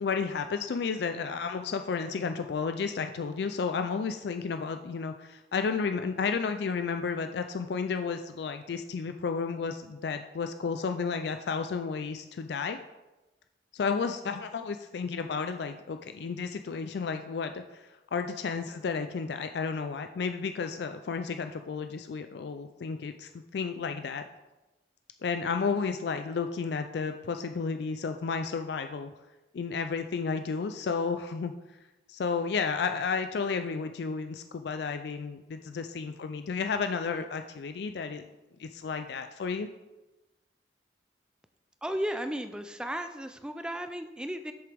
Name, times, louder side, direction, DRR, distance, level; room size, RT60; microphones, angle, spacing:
voice 1, 0.0-12.8 13.7-24.2 25.2-29.1 29.5-31.5 32.1-38.2 38.6-39.7, left 5 dB, 65° left, 7 dB, 0.4 m, -32 dB
voice 2, 41.8-44.5, equal, 5° right, 8 dB, 0.4 m, -34 dB
7.9 x 6.8 x 3.4 m, 1.1 s
head